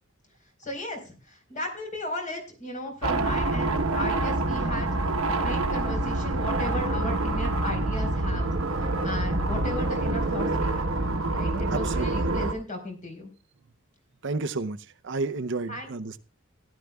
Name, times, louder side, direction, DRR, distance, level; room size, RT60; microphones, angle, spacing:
voice 1, 0.6-5.0 5.3-8.5 9.0-10.8 11.3-13.3 15.7-15.9, left 1 dB, 40° left, 4.2 m, -35 dB
sound 1, 3.0-12.5, right 2 dB, 80° right, 1.1 m, -26 dB
voice 2, 11.7-12.2 14.2-16.2, right 3 dB, 60° right, 0.6 m, -31 dB
17.0 x 11.5 x 2.3 m
head